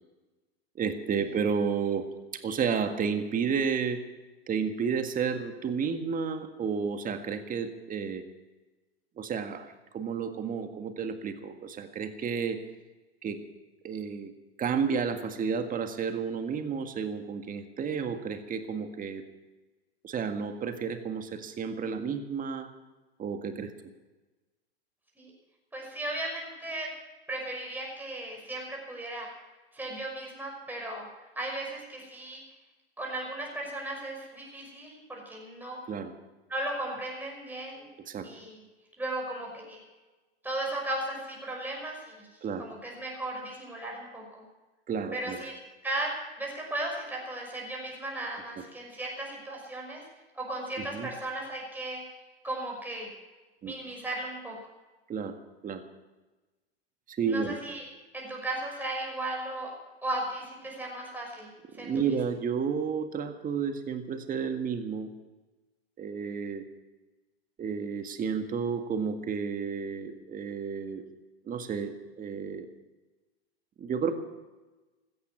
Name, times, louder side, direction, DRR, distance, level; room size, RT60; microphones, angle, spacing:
voice 1, 0.8-2.1 2.3-4.0 4.5-8.2 9.2-12.6 13.2-13.4 13.8-14.3 14.6-19.2 20.0-22.7 23.2-23.7 35.9-36.1 38.0-38.3 42.4-42.7 44.9-45.4 50.8-51.1 53.6-53.7 55.1-55.4 55.6-55.8 57.1-57.6 61.7-65.1 66.0-66.6 67.6-71.0 71.4-72.7 73.8-74.1, right 6 dB, 25° right, 7 dB, 1.8 m, -31 dB
voice 2, 25.7-26.9 27.3-29.3 29.7-31.1 31.4-32.4 33.0-35.8 36.5-37.9 38.2-38.6 39.0-39.8 40.4-42.3 42.6-44.4 45.1-45.5 45.8-46.1 46.4-50.0 50.3-52.0 52.4-53.1 53.6-54.6 57.3-57.9 58.1-59.7 60.0-62.2, right 1 dB, 5° right, -2 dB, 5.9 m, -36 dB
16.0 x 13.5 x 6.0 m, 1.2 s
hypercardioid pair, 95°, 31 cm